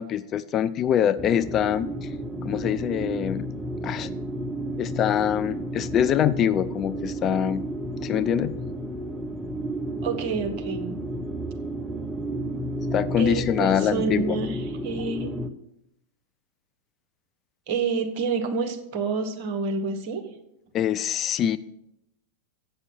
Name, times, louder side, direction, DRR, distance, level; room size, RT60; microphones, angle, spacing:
voice 1, 0.0-2.1 2.4-3.5 3.8-4.1 4.8-7.6 8.0-8.6 12.9-14.4 20.7-21.6, left 9 dB, 30° left, 13 dB, 0.3 m, -24 dB
sound 1, 1.2-15.5, right 1 dB, 5° right, 0.8 m, -32 dB
voice 2, 10.0-11.0 13.2-15.3 17.7-20.2, right 4 dB, 45° right, 5 dB, 1.3 m, -28 dB
8.1 x 6.6 x 7.1 m, 0.83 s
figure-of-eight pair, 90°, 0 cm